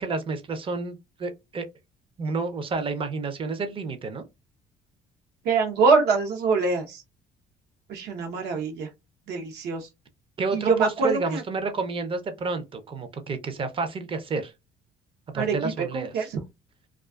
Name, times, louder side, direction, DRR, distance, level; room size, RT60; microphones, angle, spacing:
voice 1, 0.0-1.7 2.2-4.2 10.4-14.5 15.3-16.1, right 4 dB, 30° right, 0.5 m, -30 dB
voice 2, 5.4-7.0 7.9-8.9 9.3-9.9 10.5-11.4 15.3-15.5 15.9-16.4, right 4 dB, 75° right, 0.8 m, -24 dB
2.4 x 2.3 x 2.3 m
cardioid pair, 110°, 17 cm